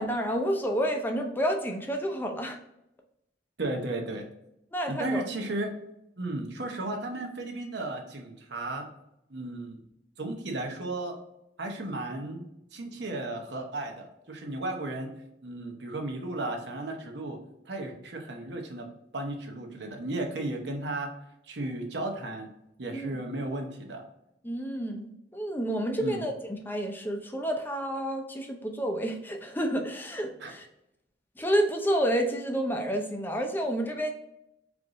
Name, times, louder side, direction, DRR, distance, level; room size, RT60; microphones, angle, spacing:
voice 1, 0.0-2.6 4.7-5.3 22.9-23.1 24.4-30.6 31.4-34.1, equal, 10° left, 3 dB, 0.6 m, -29 dB
voice 2, 3.6-4.3 4.9-5.7 6.2-8.9 9.3-9.8 10.2-11.2 11.6-15.1 15.4-17.4 17.6-18.9 19.1-21.1 21.5-22.5 22.8-24.0 26.0-26.2 30.4-30.5, right 2 dB, 75° right, 2 dB, 0.9 m, -34 dB
4.7 x 2.6 x 3.6 m, 0.83 s
head